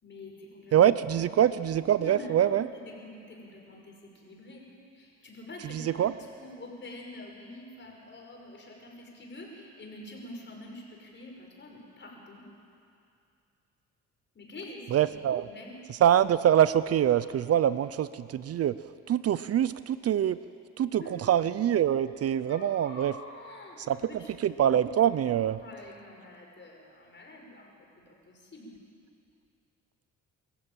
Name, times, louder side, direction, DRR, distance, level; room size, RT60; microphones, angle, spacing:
voice 1, 0.0-0.8 2.0-4.6 4.9-6.0 6.4-12.4 14.3-15.0 15.4-15.8 21.0-21.2 22.5-24.4 25.3-28.7, left 2 dB, 40° left, 0 dB, 5.7 m, -46 dB
voice 2, 0.7-2.7 5.7-6.1 14.9-15.5 16.0-18.7 19.1-20.4 20.8-23.1 23.9-24.0 24.4-25.6, right 10 dB, 55° right, 15 dB, 0.6 m, -24 dB
23.5 x 14.0 x 8.9 m, 2.5 s
cardioid pair, 90°, 30 cm